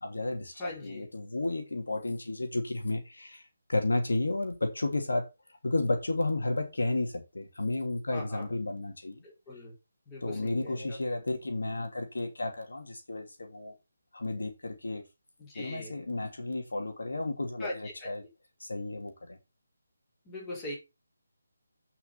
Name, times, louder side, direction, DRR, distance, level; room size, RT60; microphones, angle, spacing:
voice 1, 0.0-5.3 5.6-9.2 10.2-13.7 14.1-15.0 15.5-18.2 18.6-19.4, left 2 dB, 85° left, 2.9 m, -32 dB
voice 2, 0.6-1.1 8.1-8.5 9.2-9.7 10.1-11.2 15.4-16.0 17.6-18.1 20.2-20.8, left 1 dB, 15° left, 4.3 m, -41 dB
8.4 x 5.9 x 5.5 m
figure-of-eight pair, 160°, 0 cm